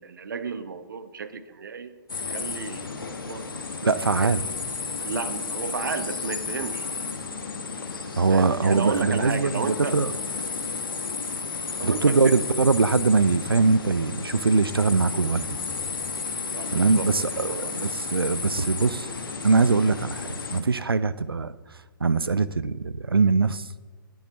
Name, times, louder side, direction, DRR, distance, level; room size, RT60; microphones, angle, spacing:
voice 1, 0.0-1.9 2.3-3.5 4.2-4.3 4.9-6.9 8.3-10.0 11.8-12.4 16.5-17.8, right 5 dB, 60° right, 12 dB, 0.9 m, -33 dB
sound 1, 2.1-20.6, left 4 dB, 70° left, 1.4 m, -33 dB
voice 2, 3.8-4.4 8.2-10.1 11.8-15.6 16.7-19.1 19.4-21.5 22.0-23.7, right 4 dB, 80° right, 16 dB, 0.4 m, -22 dB
20.0 x 7.1 x 3.1 m, 1.4 s
figure-of-eight pair, 125°, 12 cm